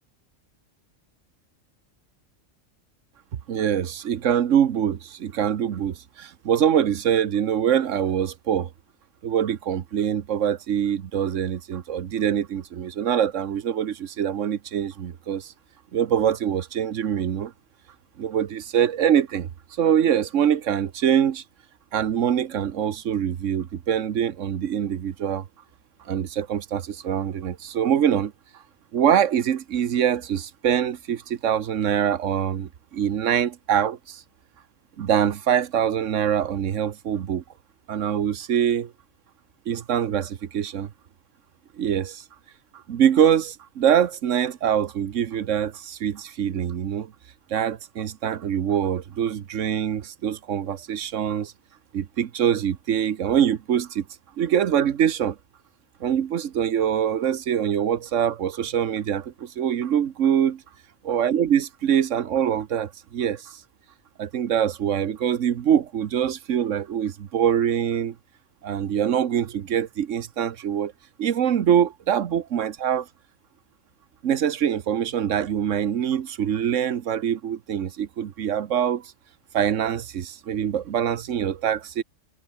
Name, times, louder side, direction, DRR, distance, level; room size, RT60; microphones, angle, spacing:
voice 1, 3.5-8.7 9.2-15.5 15.9-17.5 18.2-19.5 19.8-21.4 21.9-25.4 26.1-28.3 28.9-34.2 35.0-37.4 37.9-38.9 39.7-40.9 41.8-42.2 42.9-47.1 47.5-51.5 51.9-54.0 54.4-55.4 56.0-60.6 61.0-63.6 64.2-68.2 68.6-70.9 71.2-73.1 74.2-79.1 79.5-82.0, right 9 dB, 75° right, 1.3 m, -24 dB
omnidirectional pair, 1.3 m